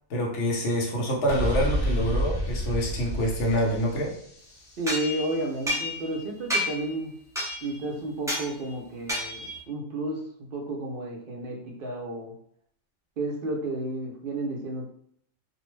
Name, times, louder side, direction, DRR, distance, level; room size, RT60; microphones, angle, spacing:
voice 1, 0.1-4.1, equal, 85° left, -2 dB, 1.0 m, -26 dB
sound 1, 1.3-5.0, equal, 60° left, 0.8 m, -29 dB
voice 2, 4.8-7.1 7.6-12.3 13.2-14.9, right 2 dB, 60° right, 0 dB, 0.7 m, -32 dB
sound 2, 4.9-6.2 6.5-6.9 7.4-7.8 8.3-8.5 9.1-9.6, left 1 dB, 5° right, 0.4 m, -30 dB
2.5 x 2.0 x 3.0 m, 0.67 s
omnidirectional pair, 1.2 m